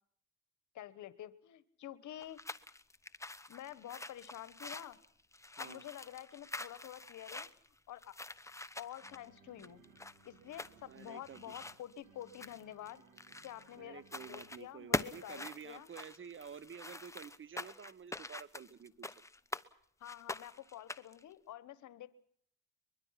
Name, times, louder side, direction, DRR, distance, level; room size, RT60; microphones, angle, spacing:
voice 1, 0.7-2.4 3.5-5.0 5.6-7.5 7.9-8.1 8.8-9.8 10.2-13.0 13.4-14.0 14.3-15.9 20.0-22.1, left 12 dB, 75° left, 15 dB, 1.3 m, -48 dB
sound 1, 2.2-13.8 14.1-14.6 14.9-19.7 20.0-21.2, left 2 dB, 10° left, 0.9 m, -44 dB
sound 2, 8.4-14.9, right 6 dB, 80° right, 3.3 m, -65 dB
voice 2, 10.8-11.5 13.8-19.2, right 7 dB, 40° right, 18 dB, 1.2 m, -50 dB
23.5 x 22.0 x 5.9 m, 0.65 s
cardioid pair, 90°, 30 cm